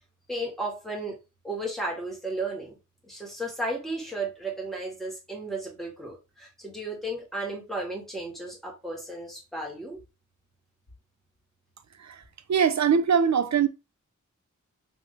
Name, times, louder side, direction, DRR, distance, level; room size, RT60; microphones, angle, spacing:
voice 1, 0.3-1.2 1.4-2.8 3.0-10.0, right 1 dB, ahead, 1.7 m, -34 dB
voice 2, 12.5-13.7, right 7 dB, 60° right, 0.5 m, -22 dB
3.5 x 3.1 x 3.2 m
wide cardioid pair, 85°, 31 cm